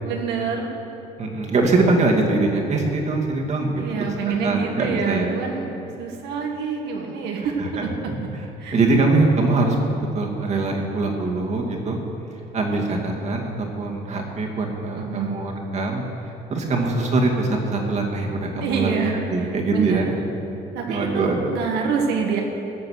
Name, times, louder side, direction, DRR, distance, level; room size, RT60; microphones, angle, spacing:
voice 1, 0.0-0.7 3.8-7.9 8.2-8.3 8.6-8.8 14.9-15.4 18.6-20.2 20.7-22.4, right 5 dB, 80° right, 1 dB, 1.5 m, -26 dB
voice 2, 1.2-3.8 4.4-5.4 7.6-7.8 8.1-8.2 8.7-12.0 12.5-16.0 16.5-19.0 19.3-20.1 20.9-21.5, right 3 dB, 40° right, 0 dB, 2.1 m, -22 dB
16.0 x 6.6 x 6.4 m, 3.0 s
cardioid pair, 110°, 17 cm